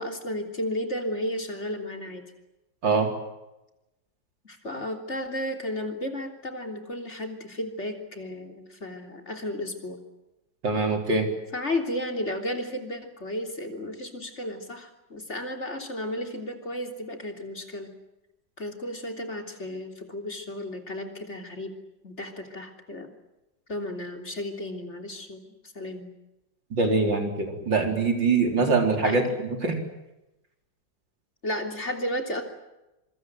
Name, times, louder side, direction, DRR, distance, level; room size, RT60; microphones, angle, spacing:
voice 1, 0.0-2.2 4.4-10.0 11.5-17.9 18.6-21.7 22.0-23.1 23.7-25.4 25.8-26.1 29.0-29.2 31.4-32.4, left 1 dB, 35° left, 4 dB, 3.7 m, -33 dB
voice 2, 10.6-11.3 26.7-29.8, right 4 dB, 85° right, 4 dB, 4.8 m, -23 dB
26.5 x 24.0 x 7.8 m, 0.94 s
omnidirectional pair, 1.9 m